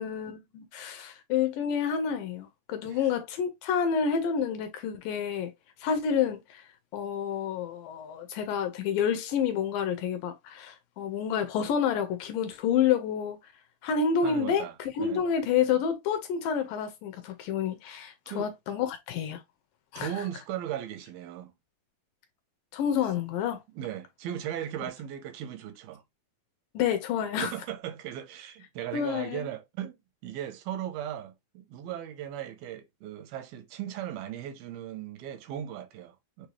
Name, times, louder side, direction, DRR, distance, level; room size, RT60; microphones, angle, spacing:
voice 1, 0.0-5.5 5.8-6.7 6.9-13.4 13.8-19.4 19.9-20.1 22.7-23.6 26.8-27.5 28.9-29.4, left 7 dB, 80° left, 2.1 m, -29 dB
voice 2, 14.2-15.2 18.3-18.5 19.9-21.5 23.7-26.0 27.4-36.5, right 11 dB, 85° right, 2.5 m, -37 dB
6.7 x 2.6 x 3.0 m
omnidirectional pair, 4.3 m